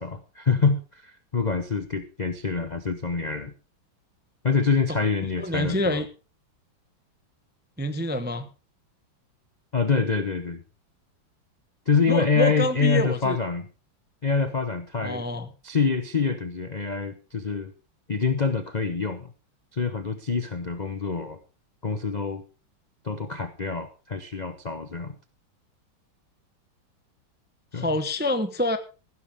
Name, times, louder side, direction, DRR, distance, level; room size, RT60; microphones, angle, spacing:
voice 1, 0.0-3.5 4.4-6.0 9.7-10.6 11.9-13.7 14.2-15.2 15.6-17.7 18.1-19.3 19.7-21.4 21.8-22.4 23.0-25.1 27.7-27.9, left 4 dB, 45° left, 10 dB, 0.5 m, -26 dB
voice 2, 5.4-6.1 7.8-8.5 12.1-13.4 15.0-15.5 27.7-28.8, left 1 dB, 10° right, 9 dB, 0.5 m, -26 dB
15.5 x 12.0 x 3.5 m, 0.33 s
omnidirectional pair, 2.1 m